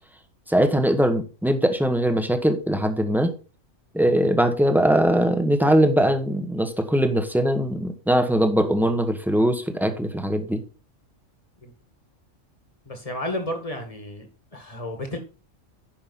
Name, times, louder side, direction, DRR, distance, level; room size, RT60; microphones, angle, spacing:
voice 1, 0.5-3.3 3.9-10.6, right 1 dB, ahead, 7 dB, 1.1 m, -21 dB
voice 2, 12.9-15.2, left 1 dB, 25° left, 5 dB, 1.9 m, -32 dB
10.5 x 5.5 x 4.2 m, 0.34 s
omnidirectional pair, 1.3 m